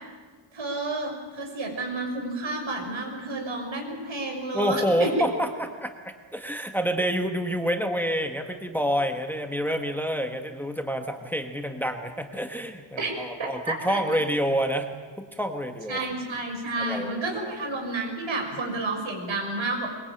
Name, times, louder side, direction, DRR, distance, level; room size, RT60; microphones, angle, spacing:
voice 1, 0.5-5.1 13.0-13.1 13.4-14.0 15.9-19.9, right 2 dB, 70° right, 3 dB, 6.1 m, -30 dB
voice 2, 4.5-14.9 15.2-16.1 16.8-17.5, equal, 5° left, 5 dB, 1.4 m, -28 dB
23.0 x 22.0 x 8.9 m, 1.5 s
wide cardioid pair, 155°, 48 cm